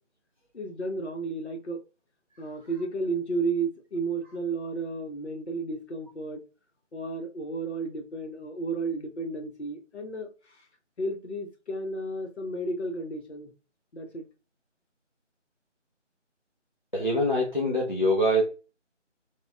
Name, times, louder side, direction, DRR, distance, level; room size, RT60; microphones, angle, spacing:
voice 1, 0.5-1.8 2.4-6.4 6.9-10.7 11.0-13.5 13.9-14.3, right 3 dB, 60° left, 4 dB, 0.8 m, -33 dB
voice 2, 16.9-18.4, equal, 40° left, -2 dB, 0.4 m, -24 dB
2.9 x 2.2 x 2.2 m, 0.32 s
figure-of-eight pair, 175°, 37 cm